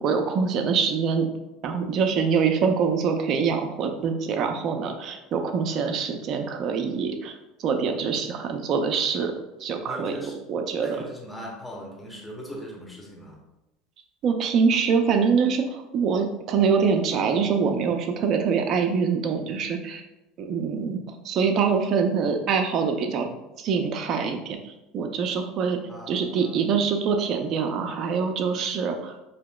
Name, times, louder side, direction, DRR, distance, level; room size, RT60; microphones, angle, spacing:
voice 1, 0.0-1.3 1.6-7.3 7.6-9.3 9.6-10.1 10.5-10.9 14.2-20.0 20.4-21.0 21.2-23.3 23.6-25.8 26.1-29.2, right 6 dB, 50° right, 5 dB, 0.6 m, -24 dB
voice 2, 9.8-13.4 25.9-26.6, equal, 10° left, -2 dB, 1.1 m, -39 dB
4.9 x 2.8 x 2.3 m, 0.95 s
hypercardioid pair, 80°, 0 cm